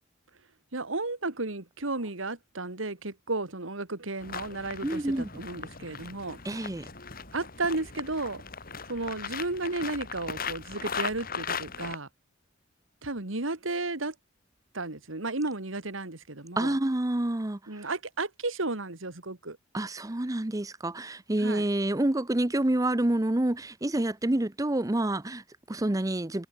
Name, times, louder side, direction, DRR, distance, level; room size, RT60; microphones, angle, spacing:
voice 1, 0.7-6.4 7.3-8.4 8.9-12.1 13.0-14.1 14.7-16.8 17.7-19.6 21.4-21.6, right 2 dB, 85° right, 2.4 m, -33 dB
sound 1, 4.2-12.0, left 6 dB, 50° left, 4.7 m, -38 dB
voice 2, 4.8-5.3 6.4-6.9 16.6-17.9 19.7-26.5, right 1 dB, 20° right, 0.7 m, -28 dB
head